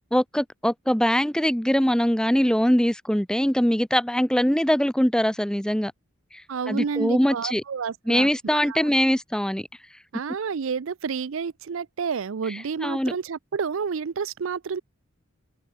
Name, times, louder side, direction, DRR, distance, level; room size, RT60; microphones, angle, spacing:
voice 1, 0.1-5.9 6.7-7.6 8.1-9.7 12.8-13.1, equal, 5° left, 0.8 m, -22 dB
voice 2, 6.5-8.9 10.1-14.8, right 6 dB, 75° right, 0.5 m, -30 dB
head